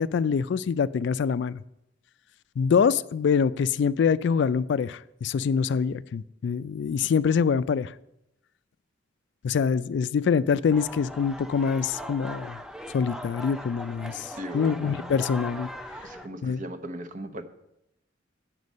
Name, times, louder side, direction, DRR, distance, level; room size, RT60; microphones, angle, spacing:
voice 1, 0.0-1.6 2.6-7.9 9.4-12.6 12.9-15.7 16.4-16.6, left 6 dB, 65° left, 16 dB, 0.3 m, -25 dB
sound 1, 10.7-16.3, equal, 5° right, 0.4 m, -39 dB
voice 2, 14.3-15.1 16.0-17.4, right 1 dB, 40° right, 9 dB, 0.8 m, -38 dB
9.6 x 7.4 x 5.3 m, 0.83 s
head